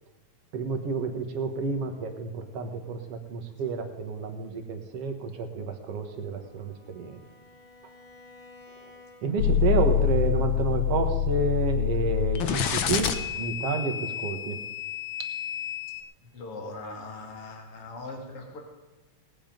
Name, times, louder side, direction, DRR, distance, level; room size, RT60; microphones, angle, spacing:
voice 1, 0.5-7.2 8.7-8.9 9.2-13.1 13.4-14.6, right 4 dB, 60° right, 5 dB, 2.2 m, -30 dB
Bowed string instrument, 5.7-9.5, left 3 dB, 15° right, 2.8 m, -53 dB
sound 1, 9.4-16.0, left 9 dB, 85° left, 1.0 m, -27 dB
voice 2, 16.2-18.6, left 2 dB, 50° left, 2 dB, 3.1 m, -40 dB
18.5 x 8.9 x 5.2 m, 1.1 s
omnidirectional pair, 3.4 m